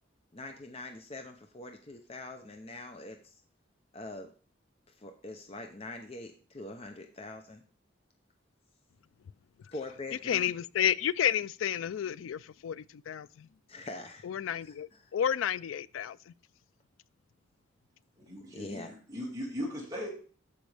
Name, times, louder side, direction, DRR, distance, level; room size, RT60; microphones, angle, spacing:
voice 1, 0.3-3.4 3.9-4.3 4.9-7.6 9.7-10.5 13.7-14.3 14.6-15.1 18.5-18.9, left 2 dB, 30° left, 0.7 m, -43 dB
voice 2, 10.3-13.5 14.2-16.3, left 9 dB, 80° left, 0.3 m, -31 dB
voice 3, 18.2-18.8 19.1-20.1, left 1 dB, 20° right, 2.4 m, -38 dB
13.5 x 5.1 x 3.4 m
head